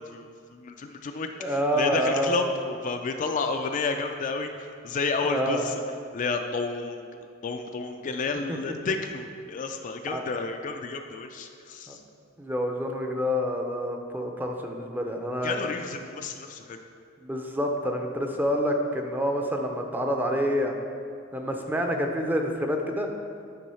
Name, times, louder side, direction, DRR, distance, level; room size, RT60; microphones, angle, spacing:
voice 1, 0.0-5.8 6.1-12.0 15.4-16.8, left 4 dB, 40° left, 5 dB, 0.3 m, -31 dB
voice 2, 1.4-2.3 5.2-5.6 8.5-8.6 10.1-10.2 11.9-12.0 12.4-15.6 17.2-20.8 21.3-23.1, equal, 10° right, 2 dB, 0.5 m, -27 dB
9.1 x 3.8 x 5.6 m, 2.3 s
head